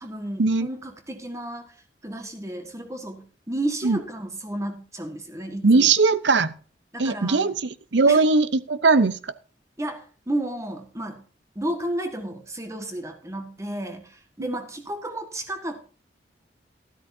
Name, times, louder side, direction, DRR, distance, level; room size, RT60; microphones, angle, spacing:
voice 1, 0.0-1.7 2.0-5.9 6.9-7.5 8.1-8.2 9.8-11.2 11.5-14.1 14.4-15.8, right 1 dB, 15° right, 6 dB, 1.6 m, -32 dB
voice 2, 5.6-6.6 7.0-9.2, right 4 dB, 80° right, 15 dB, 0.8 m, -19 dB
13.0 x 12.5 x 2.7 m, 0.39 s
head